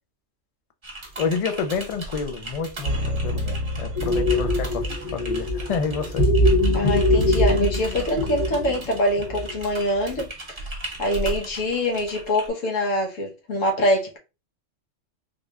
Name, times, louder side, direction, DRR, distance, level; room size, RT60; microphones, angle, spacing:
Typing, 0.8-12.5, right 2 dB, 25° right, 0.9 m, -38 dB
voice 1, 1.2-6.3, left 5 dB, 65° left, 0.3 m, -29 dB
sound 1, 2.9-5.0 5.4-5.5, equal, 75° right, 0.9 m, -29 dB
sound 2, 4.0-9.6 9.9-10.3, left 1 dB, 40° left, 0.7 m, -22 dB
voice 2, 6.7-10.3 10.6-10.7 11.0-14.2, left 1 dB, 85° left, 1.4 m, -24 dB
3.8 x 3.2 x 2.3 m
omnidirectional pair, 1.3 m